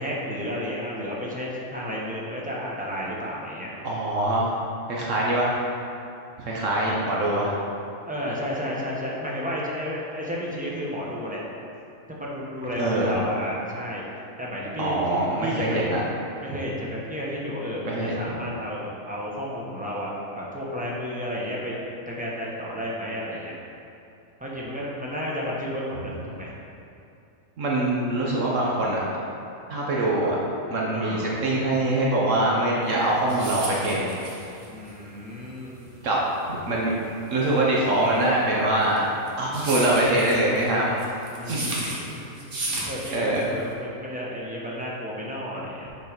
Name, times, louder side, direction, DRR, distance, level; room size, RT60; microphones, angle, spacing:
voice 1, 0.0-3.8 8.0-11.4 12.1-14.0 14.4-15.9 16.4-21.8 22.1-23.6 24.4-26.5 30.9-31.3 34.7-35.8 41.4-42.3 42.9-45.9, equal, 5° right, -5 dB, 0.9 m, -32 dB
voice 2, 3.8-4.5 4.9-5.6 6.4-7.5 12.8-13.1 14.8-16.0 17.8-18.3 27.6-29.0 29.7-30.4 30.7-34.1 36.0-36.2 36.5-36.9 37.3-39.1 39.4-40.9 41.5-41.9 43.1-43.5, right 1 dB, 65° right, -4 dB, 1.2 m, -23 dB
sound 1, 32.9-43.7, right 2 dB, 40° right, 1.2 m, -34 dB
6.1 x 4.7 x 5.1 m, 2.6 s
omnidirectional pair, 1.5 m